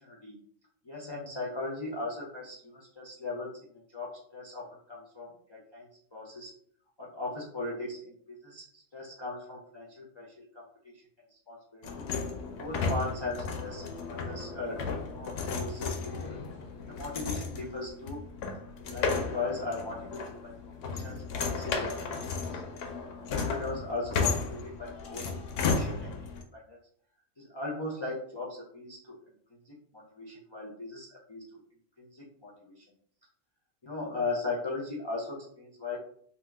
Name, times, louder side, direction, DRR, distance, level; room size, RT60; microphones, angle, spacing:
voice 1, 0.0-0.4 0.8-6.5 7.0-10.9 11.3-12.1 12.6-16.4 16.9-18.2 18.9-22.6 23.2-25.3 25.5-26.1 26.5-26.8 27.4-31.6 32.0-32.8 33.8-36.0, left 3 dB, 45° left, -4 dB, 0.3 m, -38 dB
sound 1, 11.8-26.4, left 4 dB, 70° left, 0.9 m, -34 dB
2.8 x 2.2 x 3.3 m, 0.62 s
omnidirectional pair, 1.4 m